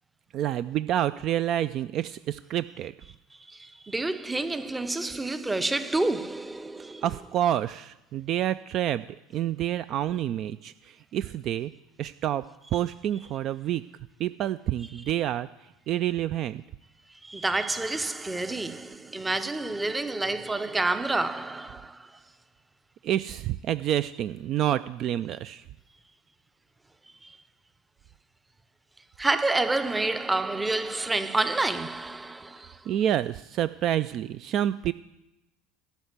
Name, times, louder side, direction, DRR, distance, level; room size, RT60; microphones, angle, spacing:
voice 1, 0.3-2.9 7.0-9.0 9.3-11.7 12.0-12.4 12.7-13.8 14.2-15.5 15.9-16.6 23.0-25.6 32.9-34.9, right 11 dB, 45° right, 0.3 m, -28 dB
voice 2, 3.5-7.0 17.2-22.2 27.2-27.4 29.2-32.9, right 2 dB, 10° right, 0.7 m, -29 dB
12.5 x 5.7 x 8.1 m
figure-of-eight pair, 70°, 0 cm